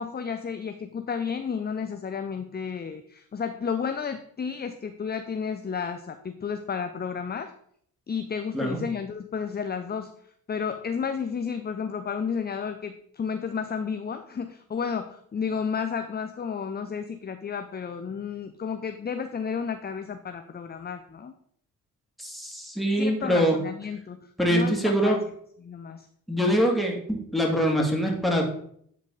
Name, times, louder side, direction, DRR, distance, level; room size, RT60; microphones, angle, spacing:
voice 1, 0.0-7.5 8.1-10.1 10.5-21.3 23.0-25.1 25.6-26.1, left 6 dB, 25° left, 8 dB, 0.6 m, -32 dB
voice 2, 22.2-23.6 24.4-25.2 26.3-28.4, equal, ahead, -1 dB, 2.4 m, -24 dB
9.7 x 4.1 x 4.0 m, 0.65 s
hypercardioid pair, 50°, 44 cm